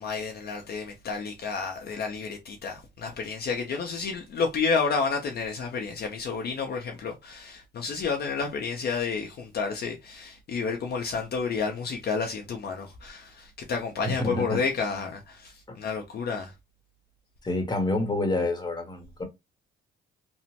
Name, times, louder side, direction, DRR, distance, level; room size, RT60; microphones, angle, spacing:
voice 1, 0.0-16.5, left 5 dB, 55° left, 0.6 m, -30 dB
voice 2, 14.0-14.6 15.7-15.8 17.4-19.2, left 2 dB, 20° left, 1.0 m, -28 dB
2.9 x 2.1 x 2.8 m
cardioid pair, 90°, 20 cm